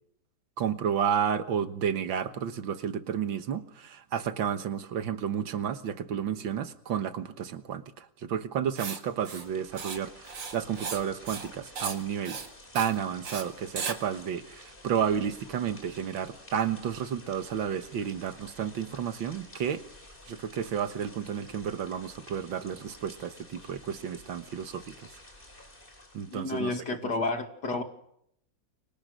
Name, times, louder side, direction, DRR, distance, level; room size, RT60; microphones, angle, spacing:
voice 1, 0.6-12.4 12.7-19.8 20.3-24.9 26.1-26.7, right 8 dB, 90° right, 2.1 m, -31 dB
Writing, 8.8-9.0 9.2-9.5 9.8-10.0 10.2-11.0 11.3-11.5 11.7-12.0 12.2-12.5 12.7-12.9 13.2-13.4 13.8-14.0, right 5 dB, 75° right, 2.8 m, -35 dB
sound 1, 9.0-26.6, left 1 dB, 25° left, 4.0 m, -52 dB
voice 2, 26.3-27.8, left 3 dB, 60° left, 3.0 m, -31 dB
29.5 x 24.5 x 6.6 m
omnidirectional pair, 2.0 m